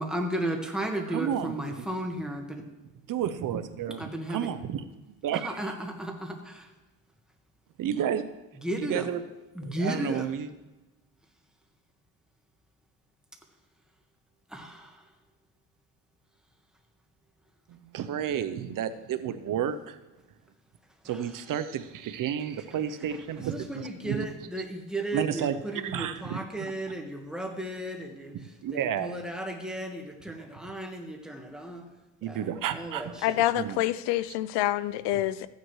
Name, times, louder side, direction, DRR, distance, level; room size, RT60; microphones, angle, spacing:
voice 1, 0.0-2.6 4.0-4.5 5.3-6.7 8.6-9.1 9.5-10.3 14.5-15.0 23.5-28.4 29.0-31.9 32.3-33.4, right 1 dB, ahead, 2 dB, 1.5 m, -34 dB
voice 2, 1.1-1.9 3.1-4.9 5.2-5.7 7.8-8.3 8.8-9.2 9.6-10.5 17.7-20.0 21.0-24.3 25.1-26.7 28.3-29.2 32.2-33.2 33.5-33.8, right 9 dB, 55° right, 11 dB, 0.7 m, -32 dB
voice 3, 33.2-35.5, left 14 dB, 85° left, 16 dB, 0.6 m, -27 dB
14.5 x 9.5 x 3.1 m, 1.1 s
cardioid pair, 115°, 40 cm